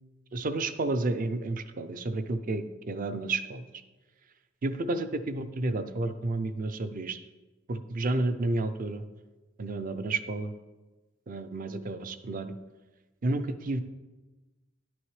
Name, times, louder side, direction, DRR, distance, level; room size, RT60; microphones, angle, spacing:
voice 1, 0.3-3.6 4.6-7.2 7.7-9.0 9.6-10.5 11.3-12.6 13.2-13.8, right 2 dB, 40° right, 11 dB, 0.5 m, -31 dB
10.5 x 6.2 x 3.2 m, 1.2 s
head